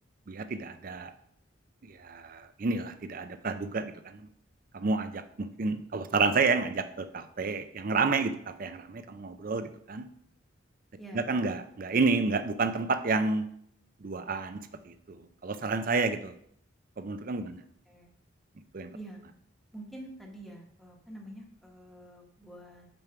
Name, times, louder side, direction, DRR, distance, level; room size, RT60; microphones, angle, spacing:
voice 1, 0.3-1.1 1.8-4.3 4.7-10.1 11.1-13.5 14.0-16.3 17.0-17.6 18.7-18.9, right 4 dB, 45° right, 10 dB, 0.5 m, -30 dB
voice 2, 19.7-22.9, right 1 dB, ahead, 0 dB, 1.0 m, -47 dB
5.3 x 4.6 x 5.7 m, 0.70 s
head